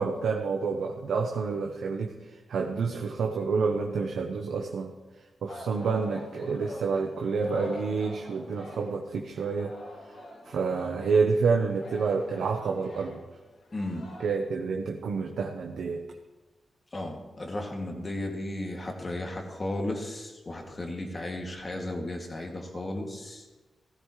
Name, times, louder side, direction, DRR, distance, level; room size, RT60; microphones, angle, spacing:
voice 1, 0.0-2.1 2.5-4.9 5.4-9.7 10.5-13.2 14.2-16.0, right 4 dB, 85° right, 2 dB, 1.0 m, -28 dB
Singing, 5.5-9.1 9.4-14.3, left 1 dB, 65° left, 2.2 m, -46 dB
voice 2, 13.7-14.1 16.9-23.4, left 1 dB, 35° left, 1 dB, 2.5 m, -34 dB
16.0 x 14.0 x 3.3 m, 1.2 s
cardioid pair, 75°, 0 cm